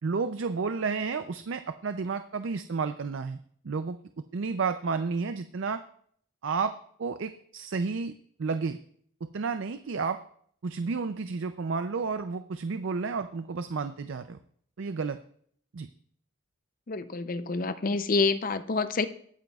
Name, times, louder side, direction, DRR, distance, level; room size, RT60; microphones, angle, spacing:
voice 1, 0.0-3.4 3.6-4.0 4.3-5.8 6.4-6.7 7.0-8.1 8.4-8.8 9.2-10.2 10.6-14.4 14.8-15.2 15.7-15.9, right 4 dB, 60° right, 10 dB, 0.4 m, -31 dB
voice 2, 16.9-19.1, left 4 dB, 40° left, 12 dB, 0.5 m, -27 dB
22.0 x 9.0 x 2.4 m, 0.62 s
head